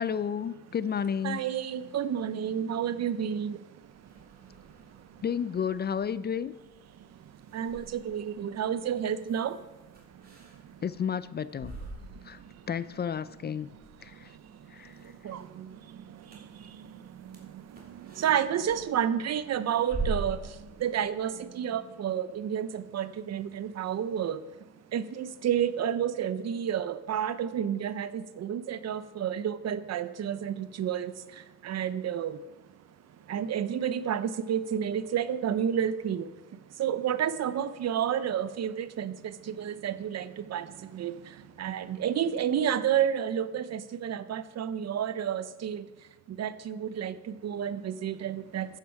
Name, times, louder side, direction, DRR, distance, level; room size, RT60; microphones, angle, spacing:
voice 1, 0.0-1.4 5.2-6.5 10.8-11.8 12.3-12.4 12.7-13.7 14.0-14.3 14.7-14.9, left 7 dB, 35° left, 16 dB, 0.4 m, -31 dB
voice 2, 1.2-5.3 6.9-10.8 12.0-12.7 13.4-32.5 32.9-48.8, right 9 dB, 60° right, 14 dB, 0.8 m, -31 dB
sound 1, 3.8-21.4, right 3 dB, 30° right, 3.4 m, -44 dB
14.5 x 9.4 x 4.7 m, 1.1 s
cardioid pair, 90°, 30 cm